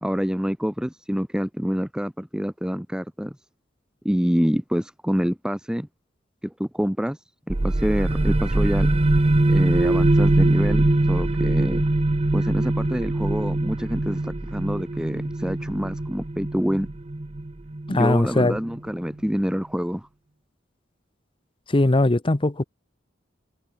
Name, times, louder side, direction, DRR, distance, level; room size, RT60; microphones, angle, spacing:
voice 1, 0.0-3.4 4.0-5.9 6.4-7.2 7.5-8.9 9.5-11.8 12.3-16.9 17.9-20.1, equal, 5° right, 1.4 m, -26 dB
sound 1, 7.5-18.9, right 2 dB, 30° right, 0.8 m, -22 dB
voice 2, 17.9-18.6 21.7-22.6, left 2 dB, 25° left, 0.8 m, -20 dB
head